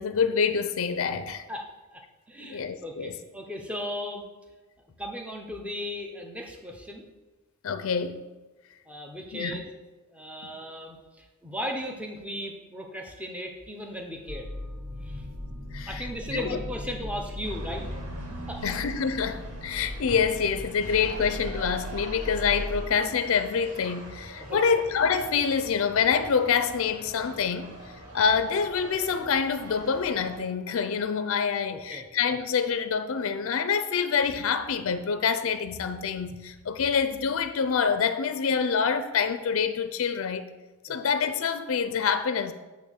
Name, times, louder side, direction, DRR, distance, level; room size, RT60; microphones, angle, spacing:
voice 1, 0.0-1.4 2.4-3.1 7.6-8.2 9.3-9.6 10.4-10.5 15.7-16.6 18.6-27.8 28.1-40.4 40.8-42.5, left 6 dB, 65° left, 0.4 m, -26 dB
voice 2, 1.5-2.0 2.3-4.2 5.0-7.0 8.9-9.7 10.1-14.5 15.0-15.2 15.9-17.9 18.5-18.6 19.9-20.1 24.4-24.6 31.7-32.0 40.9-41.0, left 1 dB, 5° right, 0.7 m, -36 dB
sound 1, 14.3-22.8, left 1 dB, 60° right, 1.5 m, -38 dB
sound 2, 17.4-30.4, right 1 dB, 85° right, 2.0 m, -44 dB
8.6 x 3.1 x 6.4 m
head